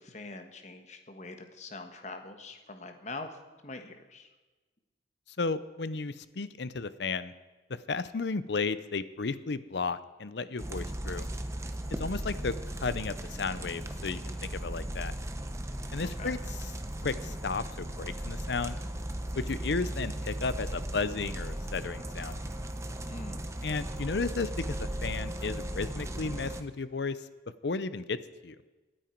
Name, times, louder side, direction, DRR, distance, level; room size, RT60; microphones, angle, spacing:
voice 1, 0.0-3.4 3.6-4.3 16.0-16.3 23.1-23.4, left 3 dB, 40° left, 6 dB, 1.3 m, -43 dB
voice 2, 5.4-7.3 7.9-11.3 12.0-15.1 15.9-16.4 17.0-18.8 19.3-22.4 23.6-27.3 27.6-28.2 28.4-28.6, left 4 dB, 65° left, 15 dB, 0.6 m, -33 dB
sound 1, 10.6-26.6, right 1 dB, 15° right, 0.8 m, -37 dB
24.5 x 9.0 x 4.5 m, 1.2 s
head